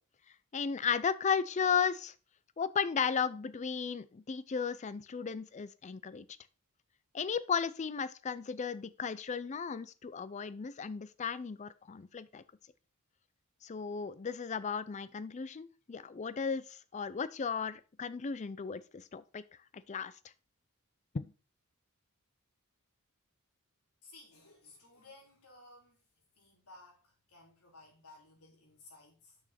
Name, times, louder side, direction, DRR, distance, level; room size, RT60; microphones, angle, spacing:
voice 1, 0.5-2.1 2.6-6.3 7.1-12.4 13.6-19.4 19.9-20.1 21.1-21.3, left 6 dB, 30° left, 0.4 m, -35 dB
voice 2, 24.0-26.0 26.4-29.4, left 2 dB, 90° left, 3.3 m, -57 dB
6.2 x 6.0 x 4.2 m
head